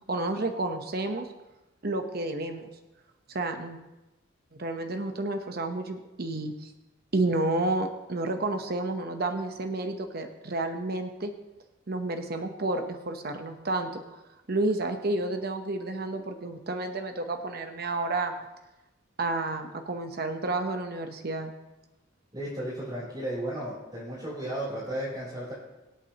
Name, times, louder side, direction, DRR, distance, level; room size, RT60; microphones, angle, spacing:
voice 1, 0.1-1.3 1.8-2.7 3.3-3.8 4.5-6.7 7.1-11.3 11.9-14.2 14.5-18.4 19.2-21.5, right 2 dB, 50° right, 6 dB, 0.9 m, -30 dB
voice 2, 22.3-25.5, right 1 dB, 20° right, -9 dB, 4.0 m, -34 dB
24.5 x 8.3 x 3.0 m, 1.0 s
head